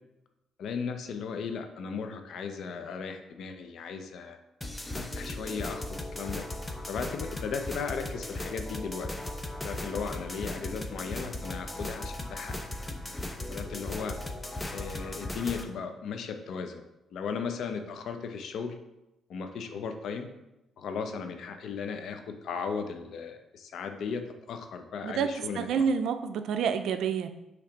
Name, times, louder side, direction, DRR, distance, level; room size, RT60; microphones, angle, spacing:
voice 1, 0.6-4.4 4.9-6.5 6.9-9.1 9.6-12.5 13.5-14.2 14.7-16.8 17.1-18.7 19.3-20.3 20.8-24.2 24.5-25.8, left 5 dB, 70° left, 7 dB, 0.7 m, -36 dB
sound 1, 4.6-15.6, left 1 dB, 15° left, 0.7 m, -37 dB
voice 2, 25.5-27.3, right 7 dB, 75° right, 9 dB, 0.5 m, -28 dB
5.8 x 3.2 x 5.1 m, 0.93 s
cardioid pair, 90°, 0 cm